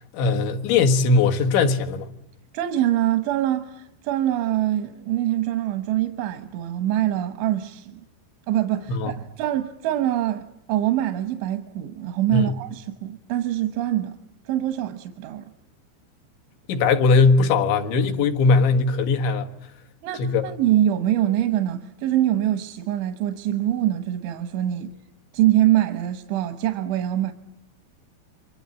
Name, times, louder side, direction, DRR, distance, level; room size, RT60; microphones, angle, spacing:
voice 1, 0.1-2.1 8.9-9.1 12.3-12.5 16.7-19.5 20.2-20.5, left 4 dB, 75° left, 3.9 m, -19 dB
voice 2, 2.5-8.0 8.5-14.2 14.5-15.5 20.0-24.9 25.3-27.3, right 13 dB, 85° right, 3.6 m, -24 dB
29.0 x 24.0 x 8.4 m
omnidirectional pair, 5.2 m